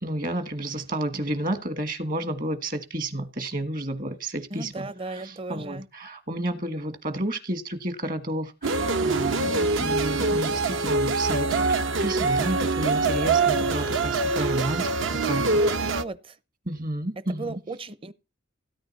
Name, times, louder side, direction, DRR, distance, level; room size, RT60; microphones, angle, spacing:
voice 1, 0.0-14.9 15.2-15.6 16.7-17.6, right 1 dB, 40° right, 1.4 m, -31 dB
voice 2, 4.5-5.9 15.3-16.4 17.3-18.1, right 2 dB, 25° right, 0.7 m, -36 dB
sound 1, 8.6-16.0, right 3 dB, 70° right, 1.0 m, -24 dB
16.5 x 9.8 x 4.2 m
head